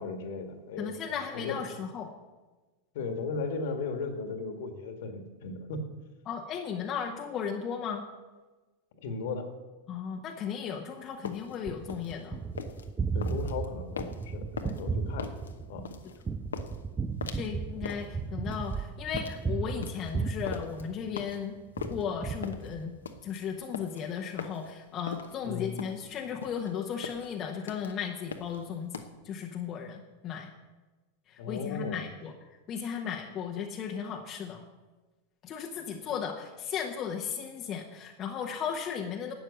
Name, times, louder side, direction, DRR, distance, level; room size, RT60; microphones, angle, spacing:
voice 1, 0.0-1.0 1.3-1.6 2.9-5.8 9.0-9.5 13.1-15.3 15.7-15.9 25.4-25.8 31.4-32.1 36.0-36.1, left 4 dB, 55° left, 6 dB, 1.7 m, -36 dB
voice 2, 0.8-2.1 6.3-8.0 9.9-12.4 14.7-14.8 17.3-21.6 21.9-23.0 23.2-30.5 31.3-32.3 32.7-34.6 35.4-39.3, left 7 dB, 30° left, 1 dB, 1.1 m, -36 dB
sound 1, 11.0-29.1, left 6 dB, 70° left, 1.0 m, -41 dB
Gunshot gunfire, 11.7-21.3 21.8-23.2, right 5 dB, 15° right, 0.5 m, -35 dB
12.0 x 8.8 x 6.6 m, 1.2 s
figure-of-eight pair, 90°, 0 cm